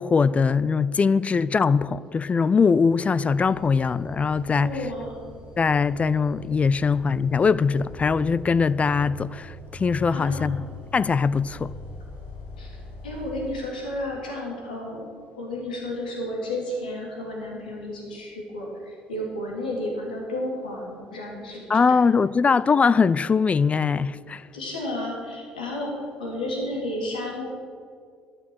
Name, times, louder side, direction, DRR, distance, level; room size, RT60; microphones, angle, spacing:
voice 1, 0.0-4.9 5.6-10.6 10.9-11.7 21.7-24.5, left 5 dB, 30° left, 0.4 m, -21 dB
sound 1, 3.2-13.6, equal, 65° left, 3.8 m, -42 dB
voice 2, 4.6-5.2 10.1-10.5 12.6-12.7 13.0-15.0 15.4-22.0 24.5-27.5, left 1 dB, 85° left, 2.8 m, -32 dB
12.0 x 10.5 x 6.3 m
hypercardioid pair, 55°, 5 cm